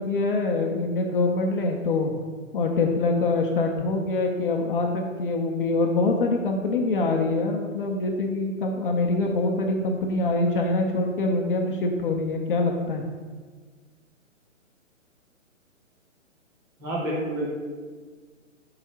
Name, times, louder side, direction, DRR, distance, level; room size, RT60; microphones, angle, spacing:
voice 1, 0.0-2.1 2.5-13.0, left 3 dB, 45° left, 2 dB, 0.6 m, -24 dB
voice 2, 16.8-17.5, right 1 dB, 10° right, -5 dB, 0.8 m, -28 dB
4.8 x 3.6 x 5.5 m, 1.5 s
hypercardioid pair, 150°, 39 cm